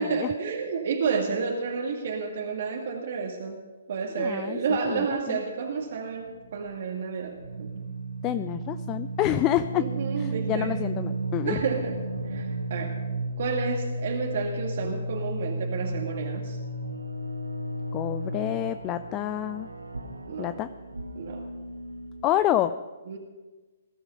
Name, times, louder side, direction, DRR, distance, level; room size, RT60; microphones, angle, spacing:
voice 1, 0.0-3.6 3.9-7.9 9.7-10.8 11.4-12.0 12.3-13.0 13.4-16.6 20.3-20.6 21.2-21.4 23.1-23.2, right 5 dB, 55° right, 1 dB, 2.0 m, -30 dB
voice 2, 4.2-5.4 8.2-9.8 10.2-11.6 17.9-19.7 20.4-20.7 22.2-22.7, left 13 dB, 25° left, 12 dB, 0.5 m, -28 dB
sound 1, 6.2-6.7 7.4-22.3, right 1 dB, 85° right, 1.5 m, -34 dB
20.0 x 12.0 x 5.4 m, 1.2 s
figure-of-eight pair, 130°, 0 cm